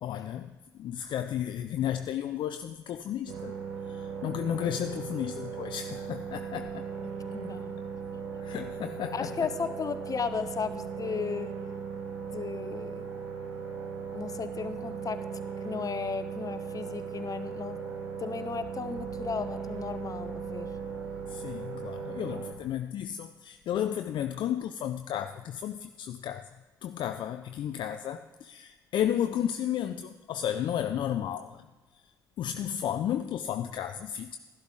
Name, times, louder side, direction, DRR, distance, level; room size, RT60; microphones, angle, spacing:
voice 1, 0.0-3.6 3.9-6.9 8.4-9.5 21.3-26.5 26.8-31.7 32.4-34.4, left 10 dB, 55° left, 9 dB, 0.4 m, -33 dB
sound 1, 3.3-22.5, right 6 dB, 80° right, 1.4 m, -38 dB
voice 2, 7.0-7.8 9.1-11.5 12.3-13.1 14.1-15.2 15.6-17.8 18.2-20.7 22.3-22.4, left 5 dB, 40° left, 11 dB, 0.8 m, -35 dB
sound 2, 18.6-22.7, right 1 dB, 35° right, 1.6 m, -51 dB
12.0 x 11.5 x 3.7 m, 1.2 s
hypercardioid pair, 45°, 10 cm